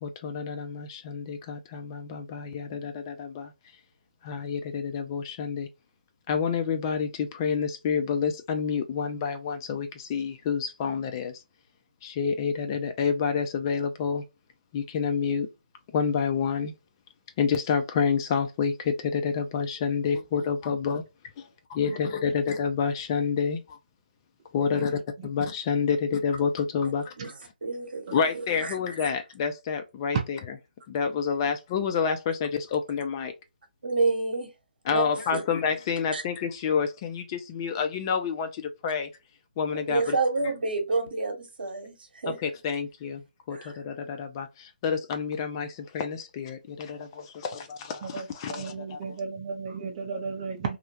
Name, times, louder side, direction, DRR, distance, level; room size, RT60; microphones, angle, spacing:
voice 1, 0.0-3.5 4.2-5.7 6.3-11.4 12.0-14.2 14.7-15.5 15.9-16.7 17.4-21.0 21.4-23.8 24.5-27.1 28.1-30.4 30.9-33.3 34.9-39.1 39.6-40.2 42.4-49.0, left 6 dB, 25° left, 0.4 m, -28 dB
voice 2, 24.5-25.3 30.1-30.2 48.0-50.8, right 6 dB, 35° right, 0.4 m, -34 dB
voice 3, 27.6-28.8 33.8-34.5 34.9-35.6 36.1-36.2 39.7-42.4 43.5-43.8, right 3 dB, 75° right, 1.0 m, -29 dB
2.4 x 2.1 x 2.7 m
figure-of-eight pair, 150°, 5 cm